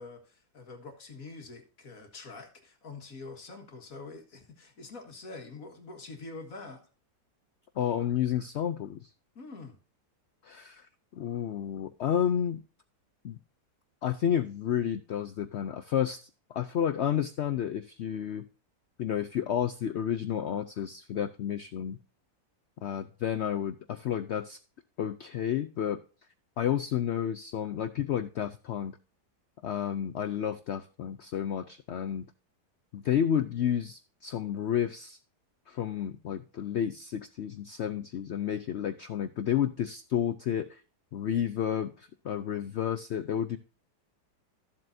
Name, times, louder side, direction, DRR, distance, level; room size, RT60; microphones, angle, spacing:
voice 1, 0.0-6.8 9.4-9.7, left 3 dB, 55° left, 4 dB, 2.1 m, -45 dB
voice 2, 7.8-9.1 10.4-12.6 13.2-13.4 14.0-18.4 19.0-22.0 22.8-24.6 25.0-26.0 26.6-29.0 29.6-32.3 32.9-35.2 35.7-40.8 41.1-43.6, left 9 dB, 85° left, 11 dB, 0.6 m, -31 dB
13.5 x 7.6 x 2.6 m, 0.37 s
omnidirectional pair, 1.8 m